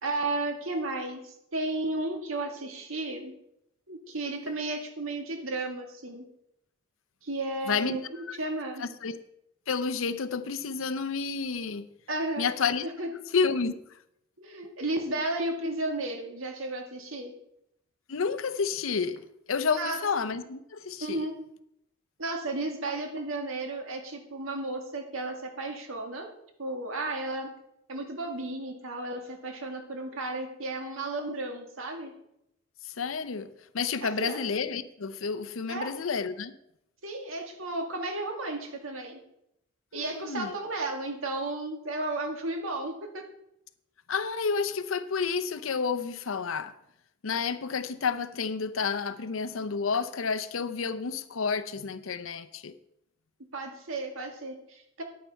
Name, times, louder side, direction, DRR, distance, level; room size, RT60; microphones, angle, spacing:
voice 1, 0.0-3.3 3.9-6.2 7.2-8.0 8.4-8.8 12.1-12.5 12.8-13.1 14.4-17.3 19.7-20.0 21.0-21.3 22.2-26.3 26.6-27.5 27.9-32.1 34.0-34.4 35.7-35.9 37.0-39.2 39.9-43.2 53.5-55.0, right 2 dB, 85° right, 1.7 m, -33 dB
voice 2, 7.7-8.0 8.3-8.4 8.8-9.2 9.7-11.9 12.4-12.9 13.3-13.7 18.1-21.2 32.8-33.5 33.7-36.5 39.9-40.5 44.1-46.7 47.2-52.7, left 5 dB, 80° left, 0.6 m, -30 dB
9.7 x 9.1 x 4.5 m
head